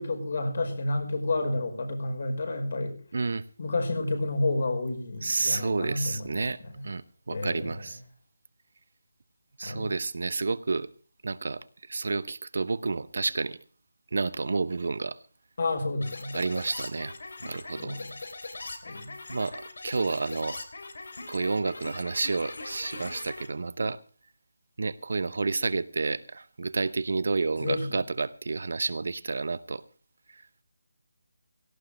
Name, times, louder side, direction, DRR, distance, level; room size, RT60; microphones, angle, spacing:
voice 1, 0.0-3.0 3.6-6.8 7.3-7.8 9.6-9.9 15.6-16.3 17.7-18.1 18.8-19.1 27.6-28.0, left 2 dB, 50° left, 5 dB, 5.3 m, -30 dB
voice 2, 3.1-3.4 5.2-6.6 6.8-8.0 9.6-10.9 11.2-11.6 11.9-13.6 14.1-15.2 16.3-17.1 17.4-18.0 19.3-20.6 21.3-24.0 24.8-29.8, right 3 dB, 60° right, 15 dB, 0.9 m, -30 dB
sound 1, 16.0-23.5, left 3 dB, 70° left, 3.1 m, -41 dB
17.5 x 16.0 x 3.3 m, 0.39 s
figure-of-eight pair, 170°, 0 cm